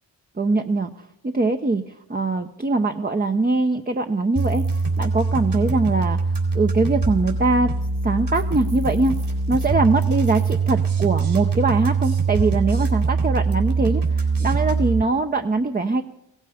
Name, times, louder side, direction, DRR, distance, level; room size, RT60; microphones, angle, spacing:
voice 1, 0.4-1.1 1.3-4.7 5.0-6.2 6.5-7.7 8.0-9.1 9.5-16.0, right 3 dB, 20° right, 5 dB, 0.6 m, -22 dB
sound 1, 4.4-15.0, right 4 dB, 60° right, 3.9 m, -23 dB
17.0 x 14.5 x 5.0 m, 0.88 s
cardioid pair, 60°, 45 cm